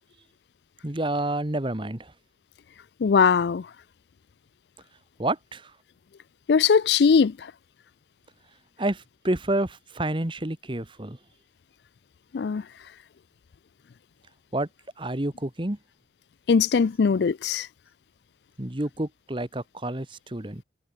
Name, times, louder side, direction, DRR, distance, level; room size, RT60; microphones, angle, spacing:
voice 1, 0.8-2.1 5.2-5.7 8.8-11.2 14.5-14.7 15.0-15.8 18.6-20.6, right 1 dB, 30° right, 1.4 m, -29 dB
voice 2, 3.0-3.7 6.5-7.3 12.3-12.6 16.5-17.7, left 6 dB, 70° left, 0.4 m, -20 dB
head